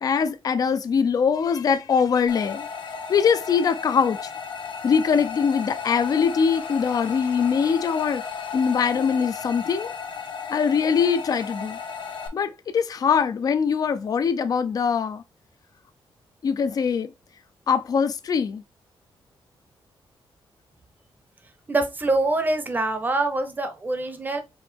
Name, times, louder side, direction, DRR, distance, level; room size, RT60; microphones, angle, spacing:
voice 1, 0.0-2.7 3.1-4.2 4.8-8.2 8.5-9.9 10.5-11.8 12.3-15.2 16.4-17.1 17.7-18.6, left 6 dB, 45° left, 0.5 m, -22 dB
sound 1, 2.3-12.3, left 6 dB, 65° left, 1.0 m, -35 dB
voice 2, 21.7-24.4, right 2 dB, 20° right, 0.7 m, -24 dB
4.8 x 3.0 x 3.3 m
wide cardioid pair, 165°, 9 cm